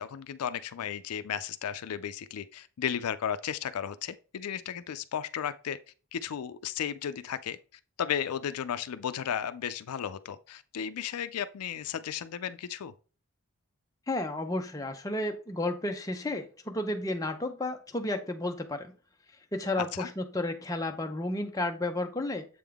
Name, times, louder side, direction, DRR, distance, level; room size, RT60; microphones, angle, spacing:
voice 1, 0.0-5.8 6.1-7.6 8.0-12.9 19.9-20.1, left 8 dB, 90° left, 0.4 m, -34 dB
voice 2, 14.1-18.9 19.5-22.5, left 2 dB, 15° left, 0.6 m, -32 dB
7.6 x 3.6 x 3.5 m
head